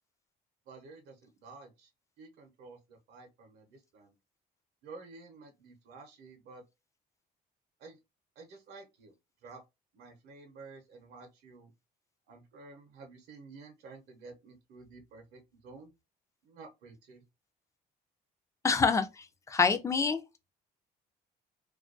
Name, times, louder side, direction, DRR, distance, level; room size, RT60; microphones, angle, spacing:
voice 1, 0.7-1.9 2.2-4.1 4.8-6.6 7.8-8.0 8.4-9.1 9.4-9.6 9.9-11.7 12.3-15.9 16.4-17.2, right 3 dB, 75° right, 0.7 m, -51 dB
voice 2, 18.6-19.1 19.5-20.2, left 5 dB, 20° left, 0.4 m, -25 dB
2.3 x 2.2 x 2.4 m
cardioid pair, 110°, 17 cm